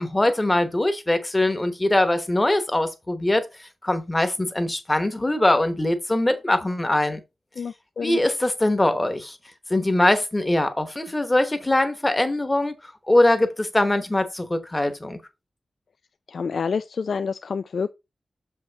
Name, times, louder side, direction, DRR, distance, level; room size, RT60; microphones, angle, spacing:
voice 1, 0.0-3.5 3.8-7.2 8.0-9.4 9.7-12.7 13.1-15.2, left 1 dB, 15° left, 1.0 m, -22 dB
voice 2, 7.6-8.2 16.3-17.9, left 5 dB, 60° left, 0.3 m, -28 dB
6.9 x 5.6 x 4.0 m
wide cardioid pair, 175°, 0 cm